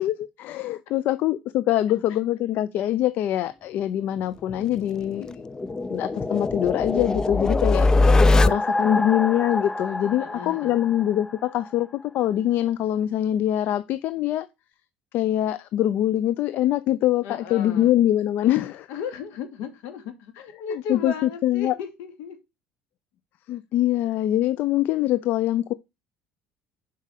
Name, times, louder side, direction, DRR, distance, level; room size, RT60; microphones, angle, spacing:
voice 1, 0.0-5.4 5.9-8.2 8.5-14.5 15.1-18.9 20.9-21.7 23.5-25.7, left 12 dB, 60° left, 0.6 m, -24 dB
sound 1, 4.5-11.3, left 2 dB, 20° left, 0.6 m, -23 dB
voice 2, 8.3-8.6 10.2-10.8 17.2-17.9 18.9-22.4, left 6 dB, 80° left, 2.7 m, -35 dB
7.5 x 5.5 x 6.6 m
cardioid pair, 110°, 4 cm